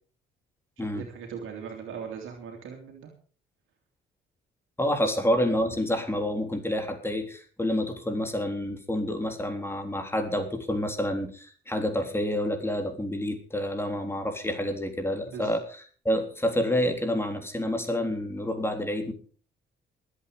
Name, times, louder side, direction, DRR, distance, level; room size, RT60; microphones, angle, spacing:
voice 1, 0.9-3.1 5.0-5.1 15.3-15.5, right 6 dB, 80° right, 1 dB, 2.9 m, -39 dB
voice 2, 4.8-15.6 16.1-19.1, left 1 dB, 10° left, 6 dB, 3.6 m, -28 dB
21.5 x 8.5 x 5.2 m, 0.41 s
cardioid pair, 90°, 20 cm